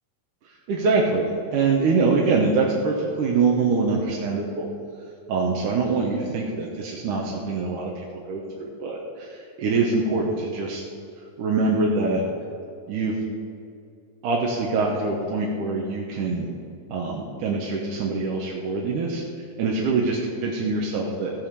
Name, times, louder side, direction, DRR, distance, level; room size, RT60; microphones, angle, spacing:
voice 1, 0.7-4.7 5.3-10.8 11.4-12.2 12.9-13.2 14.2-16.5 16.9-19.2 19.6-21.3, right 4 dB, 70° right, -2 dB, 2.5 m, -24 dB
16.5 x 5.7 x 6.9 m, 2.4 s
omnidirectional pair, 4.1 m